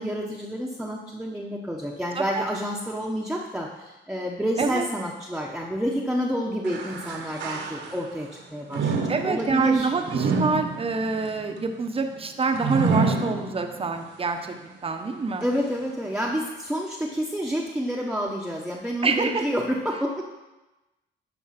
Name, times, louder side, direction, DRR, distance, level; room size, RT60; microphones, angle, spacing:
voice 1, 0.0-9.9 15.4-20.2, equal, 5° right, -3 dB, 1.1 m, -29 dB
sound 1, 6.6-8.2 8.7-14.0 14.5-14.6 15.4-15.5, right 4 dB, 70° right, 1.5 m, -28 dB
voice 2, 9.1-14.5 14.8-15.4 19.0-19.4, right 4 dB, 30° right, 5 dB, 1.0 m, -26 dB
11.5 x 4.6 x 6.0 m, 1.0 s
cardioid pair, 90°, 20 cm